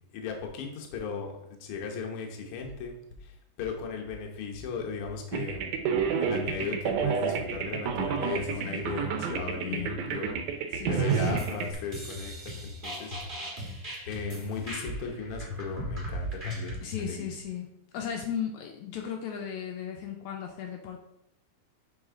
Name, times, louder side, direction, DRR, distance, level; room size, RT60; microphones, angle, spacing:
voice 1, 0.1-3.0 3.2-5.7 6.0-10.4 10.9-13.2 14.1-17.3, left 5 dB, 60° left, 2 dB, 1.6 m, -36 dB
sound 1, 2.6-3.2 3.6-4.2 4.5-5.2 5.5-6.2 6.4-7.1 7.4-8.1 8.3-9.0 9.3-10.0 10.2-10.9 11.2-11.9 12.2-12.8 13.1-13.8 14.1-14.7 15.0-15.1 15.5-16.1 16.4-16.6 16.9-17.4, left 5 dB, 45° left, 1.5 m, -43 dB
sound 2, 5.3-11.7, right 7 dB, 85° right, 2.2 m, -29 dB
voice 2, 9.6-10.0 10.7-11.4 16.8-21.0, left 8 dB, 80° left, 3 dB, 1.9 m, -36 dB
sound 3, 11.1-16.8, right 1 dB, 30° right, 1.0 m, -39 dB
6.2 x 5.0 x 3.7 m, 0.80 s
omnidirectional pair, 3.5 m